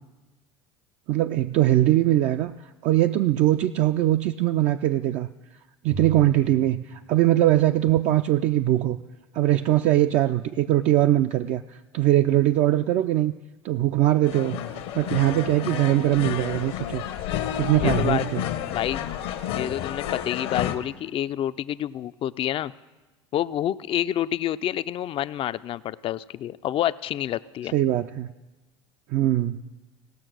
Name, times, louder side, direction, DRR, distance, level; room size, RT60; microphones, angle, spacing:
voice 1, 1.1-2.5 2.8-5.3 5.8-9.0 9.3-11.6 11.9-13.3 13.6-14.6 14.9-17.0 17.6-18.4 27.7-28.3 29.1-29.6, right 14 dB, 50° right, 7 dB, 0.4 m, -21 dB
Bowed string instrument, 5.9-8.3, right 3 dB, 75° right, 1.9 m, -40 dB
sound 1, 14.2-20.8, left 10 dB, 70° left, 1.0 m, -30 dB
voice 2, 17.8-18.4 18.7-19.0 19.5-22.7 23.3-27.7, left 11 dB, 40° left, 16 dB, 0.4 m, -28 dB
17.5 x 6.3 x 6.1 m, 1.2 s
hypercardioid pair, 80°, 14 cm